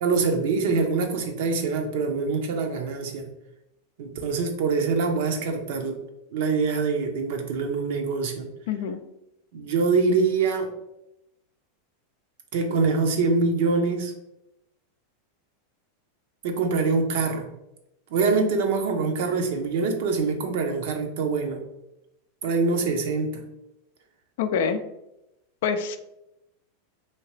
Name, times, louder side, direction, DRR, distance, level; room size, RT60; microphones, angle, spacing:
voice 1, 0.0-3.3 4.0-6.0 6.3-8.5 9.5-10.7 12.5-14.1 16.4-17.5 18.1-21.6 22.4-23.4, right 4 dB, 70° right, 4 dB, 0.6 m, -24 dB
voice 2, 8.7-9.0 24.4-24.8 25.6-26.0, left 6 dB, 70° left, 9 dB, 0.3 m, -25 dB
2.9 x 2.8 x 3.1 m, 0.88 s
hypercardioid pair, 110°, 0 cm